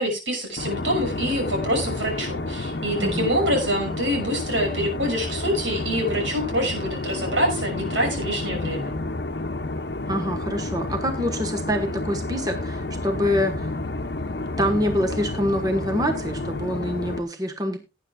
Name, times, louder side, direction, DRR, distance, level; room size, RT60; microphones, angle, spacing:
voice 1, 0.0-8.9, equal, 90° right, 3 dB, 6.2 m, -25 dB
sound 1, 0.6-17.2, left 2 dB, 60° left, 0.9 m, -30 dB
voice 2, 3.0-3.3 10.1-13.7 14.3-17.8, equal, 20° right, 3 dB, 1.3 m, -26 dB
18.5 x 9.7 x 2.4 m, 0.26 s
head